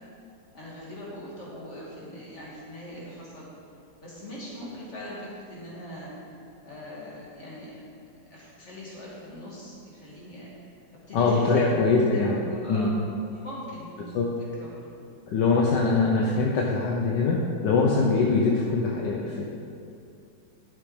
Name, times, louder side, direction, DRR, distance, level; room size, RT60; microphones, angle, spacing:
voice 1, 0.5-3.5 4.0-6.4 6.6-7.7 8.3-11.8 12.1-13.0 13.3-14.2 14.6-14.8, equal, 35° left, -6 dB, 2.8 m, -41 dB
voice 2, 11.1-12.4 12.7-12.9 14.1-14.2 15.3-19.5, left 4 dB, 70° left, -2 dB, 1.5 m, -23 dB
11.5 x 7.4 x 5.0 m, 2.5 s
omnidirectional pair, 2.1 m